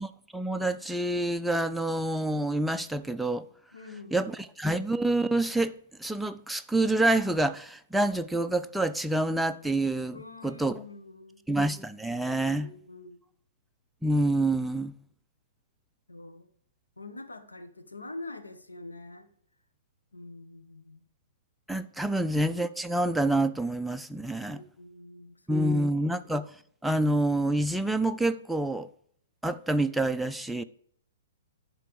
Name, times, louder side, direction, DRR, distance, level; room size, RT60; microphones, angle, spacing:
voice 1, 0.0-3.5 4.1-10.2 10.4-10.8 11.5-12.7 14.0-14.9 21.7-24.6 25.5-26.4 26.8-28.9 29.4-30.6, right 1 dB, ahead, 0.3 m, -27 dB
voice 2, 3.7-4.2 10.1-11.4 12.6-13.2 16.1-16.5 17.0-19.3 20.1-21.0 22.1-22.2 24.4-25.7, left 2 dB, 80° left, 1.0 m, -45 dB
11.0 x 3.8 x 4.8 m
figure-of-eight pair, 115°, 0 cm